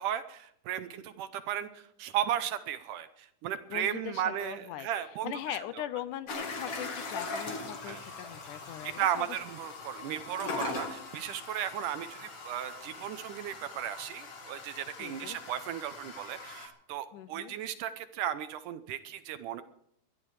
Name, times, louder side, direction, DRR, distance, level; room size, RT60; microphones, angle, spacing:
voice 1, 0.0-5.4 7.9-8.0 9.0-19.6, right 10 dB, 75° right, 12 dB, 2.2 m, -35 dB
voice 2, 3.7-4.9 5.2-9.1 10.4-10.8 15.0-15.4 17.1-17.6, left 12 dB, 75° left, 14 dB, 2.0 m, -40 dB
sound 1, 6.3-16.7, left 3 dB, 45° left, 2.9 m, -41 dB
21.0 x 12.0 x 4.8 m, 0.69 s
omnidirectional pair, 4.0 m